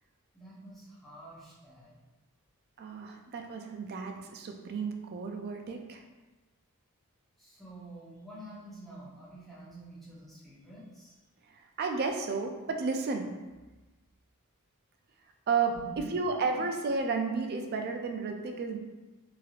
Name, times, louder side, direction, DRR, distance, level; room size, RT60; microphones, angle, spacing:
voice 1, 0.3-1.9 7.4-11.1 15.7-16.0 16.5-16.6, right 1 dB, ahead, -9 dB, 0.9 m, -48 dB
voice 2, 2.8-6.0 11.8-13.3 15.5-18.8, right 4 dB, 45° right, 4 dB, 0.3 m, -32 dB
3.2 x 2.7 x 2.4 m, 1.1 s
head